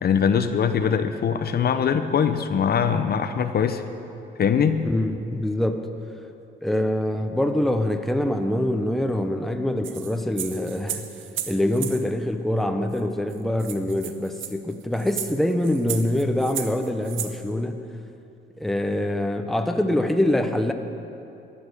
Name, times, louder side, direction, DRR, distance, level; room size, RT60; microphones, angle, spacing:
voice 1, 0.0-3.8 4.4-4.8, left 7 dB, 50° left, 9 dB, 0.8 m, -22 dB
voice 2, 4.8-5.9 6.6-11.1 11.5-17.8 18.6-20.7, left 1 dB, ahead, 6 dB, 0.9 m, -24 dB
sound 1, 9.8-12.0 13.0-13.1 13.3-13.4 13.6-17.3, right 10 dB, 80° right, 0.9 m, -34 dB
14.5 x 9.4 x 6.8 m, 2.7 s
cardioid pair, 90°, 20 cm